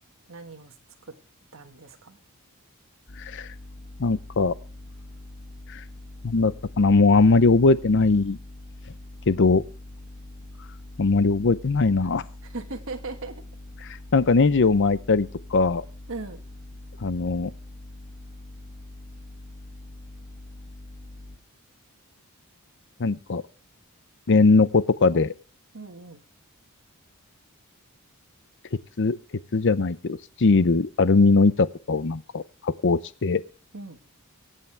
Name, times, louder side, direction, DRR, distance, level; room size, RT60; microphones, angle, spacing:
voice 1, 0.3-0.7 1.0-1.1 1.5-2.2 12.4-13.4 16.1-16.4 25.7-26.2 33.7-34.0, right 3 dB, 60° right, 4 dB, 1.6 m, -38 dB
sound 1, 3.1-21.4, left 2 dB, 35° left, 1.6 m, -43 dB
voice 2, 3.2-3.5 4.0-4.5 5.7-5.8 6.2-8.4 9.3-9.6 11.0-12.2 14.1-15.8 17.0-17.5 23.0-23.4 24.3-25.3 29.0-29.2 29.5-33.4, left 3 dB, 55° left, 16 dB, 0.7 m, -20 dB
24.0 x 8.5 x 3.4 m, 0.35 s
head